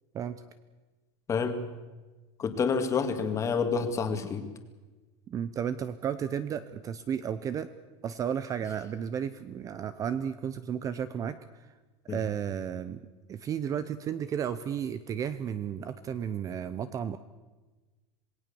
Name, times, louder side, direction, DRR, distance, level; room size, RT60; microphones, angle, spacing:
voice 1, 1.3-1.6 2.4-4.5 12.1-12.2, left 5 dB, 20° left, 7 dB, 2.1 m, -28 dB
voice 2, 5.3-7.7 8.0-11.4 12.0-13.0 13.3-17.2, right 8 dB, 25° right, 13 dB, 0.7 m, -33 dB
27.0 x 19.5 x 7.0 m, 1.2 s
supercardioid pair, 165°, 15 cm